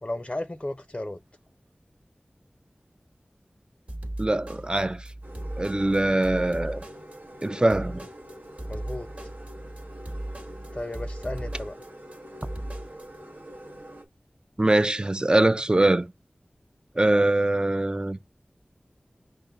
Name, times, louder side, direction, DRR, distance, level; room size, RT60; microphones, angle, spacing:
voice 1, 0.0-1.2 8.7-9.1 10.7-11.7, left 1 dB, 30° left, 0.5 m, -34 dB
sound 1, 3.9-13.1, right 1 dB, 40° right, 1.2 m, -37 dB
voice 2, 4.2-5.0 5.6-6.8 7.4-8.0 14.6-16.1 17.0-18.2, right 1 dB, 25° right, 0.4 m, -22 dB
sound 2, 5.2-14.0, equal, 70° right, 0.9 m, -45 dB
5.4 x 2.5 x 3.7 m
wide cardioid pair, 45°, 3 cm